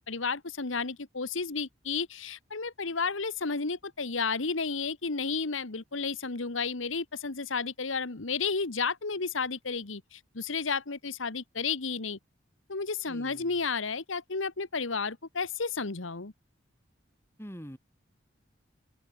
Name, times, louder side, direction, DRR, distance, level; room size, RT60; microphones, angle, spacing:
voice 1, 0.0-12.2 12.7-16.3, left 4 dB, 90° left, 1.5 m, -32 dB
voice 2, 13.0-13.6 17.4-17.8, equal, 15° left, 6.8 m, -45 dB
open air
head